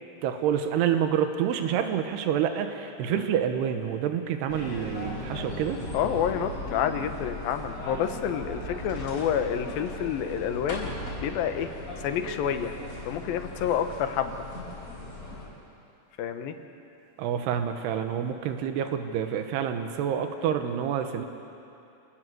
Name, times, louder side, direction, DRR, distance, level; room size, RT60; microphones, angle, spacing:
voice 1, 0.2-5.8 17.2-21.3, right 9 dB, 90° right, 7 dB, 3.2 m, -28 dB
sound 1, 4.5-15.5, left 1 dB, 40° left, 6.1 m, -38 dB
voice 2, 5.9-11.7 12.0-12.7 13.1-14.4 16.2-16.6, left 8 dB, 70° left, 7 dB, 2.8 m, -29 dB
29.0 x 20.0 x 7.7 m, 2.7 s
omnidirectional pair, 4.6 m